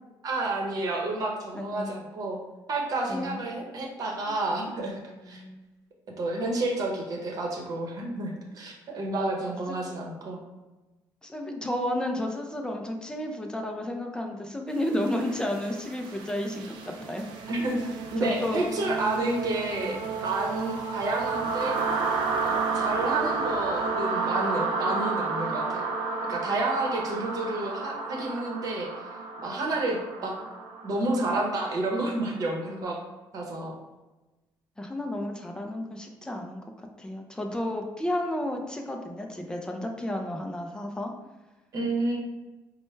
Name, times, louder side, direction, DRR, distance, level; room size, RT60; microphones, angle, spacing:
voice 1, 0.2-2.4 2.7-5.0 5.3-5.4 6.2-10.4 17.5-17.8 18.1-20.0 20.2-21.8 22.4-25.9 26.3-28.9 29.4-30.4 30.8-33.0 33.3-33.7 41.7-42.2, right 2 dB, 50° right, 0 dB, 0.8 m, -30 dB
voice 2, 1.5-2.0 3.1-3.4 4.3-4.4 5.2-5.6 9.5-9.8 11.2-16.8 17.1-17.2 18.2-18.6 19.9-20.0 34.8-36.6 37.0-41.1, left 1 dB, 10° left, 2 dB, 0.4 m, -32 dB
sound 1, 14.8-32.6, right 4 dB, 90° right, 0.5 m, -32 dB
4.3 x 2.1 x 3.1 m, 1.1 s
cardioid pair, 125°, 8 cm